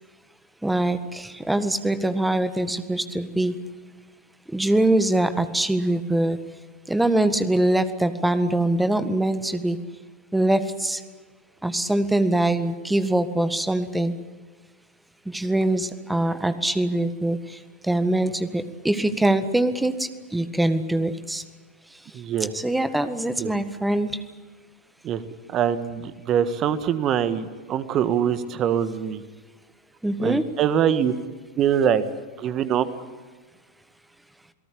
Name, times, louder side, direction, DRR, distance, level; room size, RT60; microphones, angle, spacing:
voice 1, 0.6-3.5 4.5-6.4 6.9-9.8 10.3-11.0 11.6-14.1 15.2-21.4 22.5-24.2 30.0-30.4, right 1 dB, 5° right, 11 dB, 1.7 m, -23 dB
voice 2, 22.1-22.5 23.4-23.5 25.0-25.2 25.5-29.2 30.2-31.1 31.6-32.0 32.4-32.9, right 9 dB, 30° right, 13 dB, 1.5 m, -23 dB
28.5 x 18.0 x 8.6 m, 1.4 s
figure-of-eight pair, 90°, 0 cm